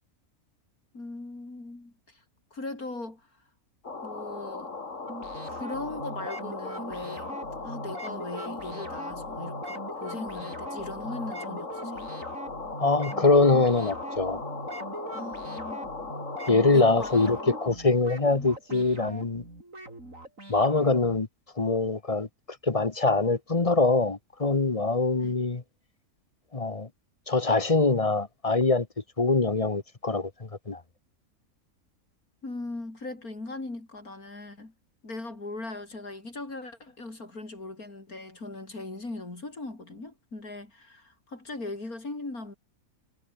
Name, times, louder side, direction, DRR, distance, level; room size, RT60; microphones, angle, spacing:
voice 1, 0.9-2.2 2.5-3.2 4.0-4.7 5.4-12.2 15.1-16.0 16.7-17.6 25.2-25.3 32.4-34.7 35.0-42.5, left 2 dB, 85° left, 6.0 m, -39 dB
sound 1, 3.8-17.7, left 3 dB, 55° left, 3.1 m, -38 dB
sound 2, 5.1-21.2, right 2 dB, 65° right, 7.6 m, -41 dB
voice 2, 12.8-14.4 16.5-19.4 20.5-21.3 21.6-22.3 22.6-25.6 26.5-26.9 27.3-28.9 29.2-30.8, left 3 dB, 25° left, 1.2 m, -23 dB
omnidirectional pair, 1.5 m